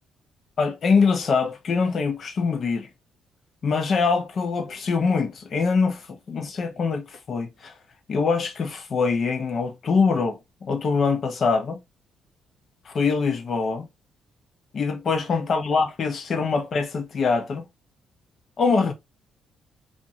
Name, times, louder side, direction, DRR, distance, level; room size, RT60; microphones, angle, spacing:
voice 1, 0.6-2.9 3.6-7.7 8.1-10.4 10.7-11.8 12.9-13.9 14.7-17.6 18.6-18.9, left 4 dB, 50° left, 0.7 m, -23 dB
2.6 x 2.6 x 2.8 m
cardioid pair, 90°, 0 cm